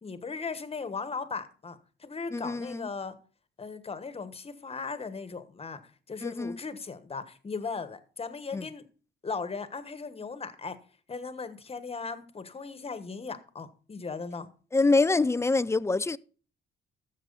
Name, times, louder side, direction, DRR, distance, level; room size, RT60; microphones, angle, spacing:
voice 1, 0.0-3.1 3.6-8.8 9.2-10.8 11.1-14.5, left 4 dB, 30° left, 1.3 m, -37 dB
voice 2, 2.3-2.9 6.2-6.6 8.5-8.7 14.7-16.2, left 3 dB, 15° left, 0.4 m, -25 dB
12.5 x 7.6 x 4.0 m
cardioid pair, 90°, 20 cm